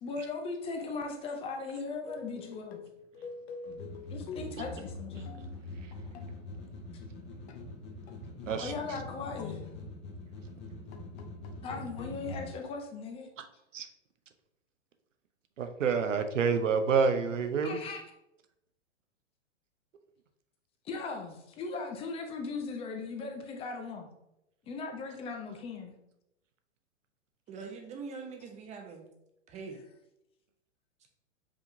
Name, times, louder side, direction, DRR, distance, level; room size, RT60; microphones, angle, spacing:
voice 1, 0.0-2.8 4.1-5.3 8.6-9.6 11.6-13.3 17.6-18.0 20.8-24.1 24.7-26.0, left 4 dB, 15° left, 3 dB, 0.5 m, -38 dB
sound 1, 2.1-6.6 7.5-7.8 8.1-10.2 10.7-12.5, left 5 dB, 60° left, 0.7 m, -47 dB
sound 2, 3.7-12.5, left 2 dB, 30° left, 1.2 m, -44 dB
voice 2, 15.6-17.8, right 5 dB, 90° right, 8 dB, 0.7 m, -28 dB
voice 3, 27.5-29.1 29.5-29.8, right 5 dB, 20° right, 3 dB, 0.7 m, -43 dB
5.0 x 3.6 x 2.7 m, 0.86 s
hypercardioid pair, 120°, 37 cm